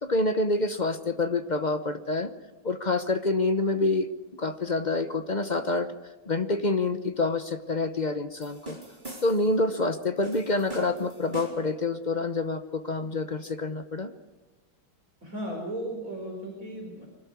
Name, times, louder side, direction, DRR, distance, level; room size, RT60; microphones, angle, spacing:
voice 1, 0.0-2.3 2.6-4.1 4.4-5.9 6.3-8.8 9.2-14.1, left 2 dB, 40° left, 9 dB, 0.6 m, -27 dB
sound 1, 8.4-9.6 10.2-11.8, right 2 dB, 20° right, 4.3 m, -43 dB
voice 2, 15.2-17.1, right 1 dB, 40° right, -1 dB, 4.8 m, -35 dB
24.5 x 13.5 x 9.6 m, 1.2 s
omnidirectional pair, 2.2 m